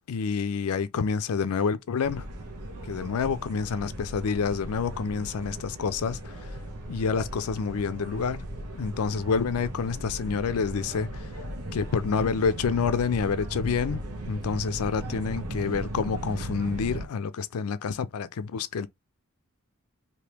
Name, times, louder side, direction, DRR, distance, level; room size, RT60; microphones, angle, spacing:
voice 1, 0.1-2.2 2.9-6.4 6.9-8.5 8.7-11.3 11.7-14.0 14.3-18.9, left 5 dB, 70° left, 0.4 m, -28 dB
sound 1, 2.0-17.1, right 1 dB, 85° right, 0.9 m, -37 dB
3.4 x 2.7 x 2.9 m
head